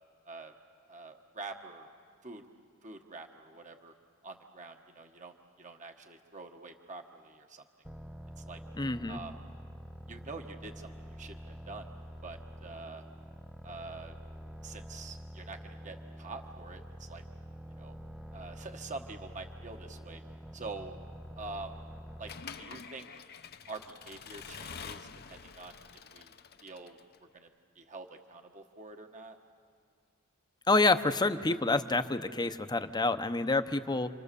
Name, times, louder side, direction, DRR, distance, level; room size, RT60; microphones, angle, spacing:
voice 1, 0.9-1.9 2.2-2.4 2.8-3.9 4.2-7.6 8.4-8.6 9.1-9.3 10.1-11.9 12.2-13.0 13.6-14.2 14.6-17.2 17.8-18.0 18.3-20.2 20.5-21.0 21.4-21.8 22.2-22.3 22.6-23.1 23.7-25.8 26.1-26.3 26.6-27.0 27.3-27.5 27.7-29.4, right 3 dB, 35° right, 5 dB, 1.3 m, -46 dB
sound 1, 7.8-22.6, equal, 5° right, 0.6 m, -47 dB
voice 2, 8.8-9.2 30.7-34.1, left 3 dB, 20° left, 9 dB, 0.8 m, -28 dB
Accelerating revving vroom / Mechanisms, 22.3-27.2, left 6 dB, 50° left, 0.8 m, -47 dB
30.0 x 25.5 x 6.9 m, 2.2 s
head